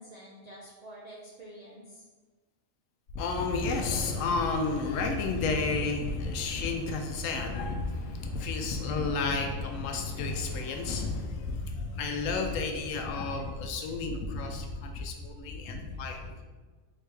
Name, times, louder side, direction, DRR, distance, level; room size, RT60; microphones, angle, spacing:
voice 1, 0.0-2.0, right 1 dB, 65° right, -4 dB, 0.4 m, -48 dB
voice 2, 3.1-16.3, left 3 dB, 85° left, 4 dB, 1.0 m, -31 dB
3.7 x 3.3 x 3.2 m, 1.3 s
omnidirectional pair, 1.3 m